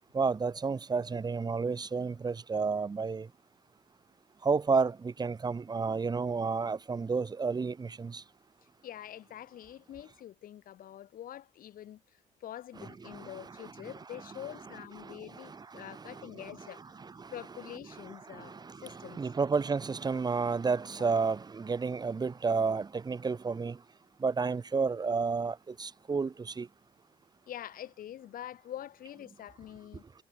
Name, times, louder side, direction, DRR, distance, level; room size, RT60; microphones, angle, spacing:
voice 1, 0.1-3.3 4.4-8.2 13.1-13.3 15.0-15.2 15.5-16.3 17.2-17.3 18.3-23.8 24.2-26.7, right 4 dB, 25° right, 1.2 m, -31 dB
voice 2, 8.8-12.0 12.4-16.8 17.3-19.2 21.0-21.2 27.5-30.0, left 11 dB, 55° left, 1.6 m, -45 dB
cardioid pair, 110°, 17 cm